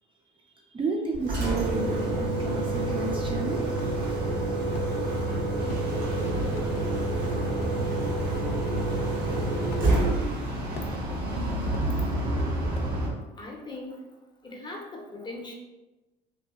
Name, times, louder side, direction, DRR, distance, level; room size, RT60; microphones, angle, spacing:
voice 1, 0.7-4.5, right 3 dB, 25° right, -1 dB, 0.5 m, -32 dB
Engine, 1.1-12.1, right 2 dB, 55° right, 0.9 m, -28 dB
sound 1, 3.7-4.2 4.7-4.9 5.7-5.9 6.5-6.7 7.6-7.8 8.6-8.7 9.7-9.9 10.7-11.2 11.7-11.9 12.7-13.0, left 3 dB, 80° left, 0.4 m, -39 dB
sound 2, 5.6-13.1, equal, 85° right, 0.9 m, -32 dB
voice 2, 13.4-14.1 14.4-15.5, left 2 dB, 20° left, 0 dB, 0.6 m, -40 dB
2.7 x 2.6 x 2.3 m, 1.1 s
hypercardioid pair, 65°, 21 cm